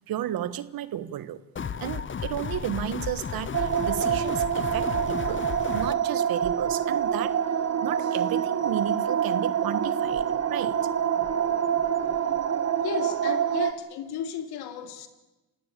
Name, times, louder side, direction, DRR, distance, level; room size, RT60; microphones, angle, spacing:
voice 1, 0.1-1.4 1.8-5.4 5.7-7.4 7.8-10.9, right 11 dB, 65° right, 1.5 m, -33 dB
sound 1, 1.6-6.0, left 7 dB, 30° left, 1.0 m, -34 dB
sound 2, 3.5-13.7, right 8 dB, 40° right, 1.9 m, -26 dB
voice 2, 12.8-15.1, left 8 dB, 75° left, 2.8 m, -34 dB
28.5 x 17.5 x 8.4 m
supercardioid pair, 75°, 39 cm